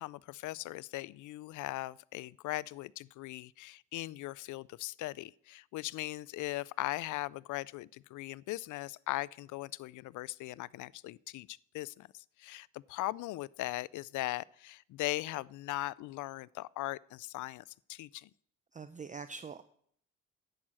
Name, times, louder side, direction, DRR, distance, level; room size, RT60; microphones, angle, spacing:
voice 1, 0.0-18.3, left 18 dB, 80° left, 0.5 m, -39 dB
voice 2, 18.7-19.6, right 5 dB, 25° right, 0.6 m, -44 dB
11.0 x 7.6 x 8.7 m
cardioid pair, 90°, 30 cm